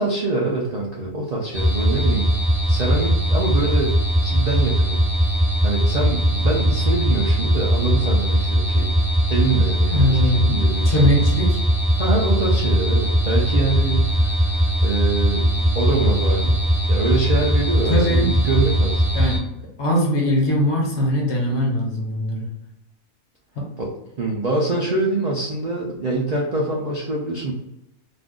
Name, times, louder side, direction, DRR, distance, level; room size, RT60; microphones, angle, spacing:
voice 1, 0.0-2.3 2.7-4.0 4.2-5.0 5.6-8.9 9.3-11.1 12.0-14.3 14.8-15.5 15.8-16.6 16.9-19.0 23.8-27.5, right 2 dB, 80° right, -3 dB, 0.3 m, -24 dB
sound 1, 1.5-19.4, equal, 15° right, 0.9 m, -20 dB
voice 2, 9.9-10.6 10.8-11.6 17.9-18.3 19.1-19.4 19.8-22.5 23.6-23.7, equal, 60° left, -2 dB, 1.1 m, -20 dB
2.5 x 2.4 x 3.6 m, 0.87 s
omnidirectional pair, 1.4 m